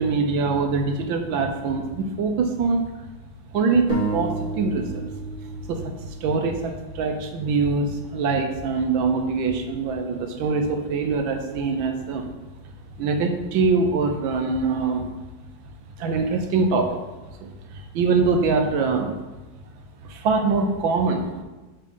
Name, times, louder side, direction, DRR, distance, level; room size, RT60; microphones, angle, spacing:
voice 1, 0.0-2.8 3.5-5.1 5.7-5.9 6.2-12.3 13.0-15.1 16.0-17.0 17.4-19.2 20.0-21.4, right 4 dB, 80° right, 4 dB, 1.5 m, -23 dB
sound 1, 3.9-7.5, right 3 dB, 25° left, 1.9 m, -32 dB
7.2 x 3.3 x 5.4 m, 1.2 s
omnidirectional pair, 2.2 m